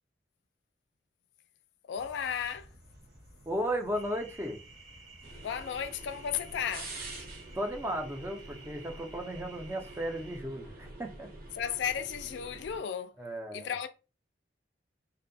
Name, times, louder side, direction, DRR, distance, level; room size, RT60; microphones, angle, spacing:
voice 1, 1.9-2.7 5.4-6.9 11.5-13.1 13.5-13.9, left 8 dB, 70° left, 0.3 m, -34 dB
sound 1, 1.9-7.6, equal, 65° right, 1.0 m, -56 dB
voice 2, 3.5-4.6 7.5-11.3 13.2-13.7, equal, 15° right, 0.4 m, -35 dB
sound 2, 3.9-10.4, right 4 dB, 85° right, 1.3 m, -54 dB
sound 3, 5.2-12.8, right 2 dB, 50° right, 0.7 m, -47 dB
2.6 x 2.1 x 2.5 m
head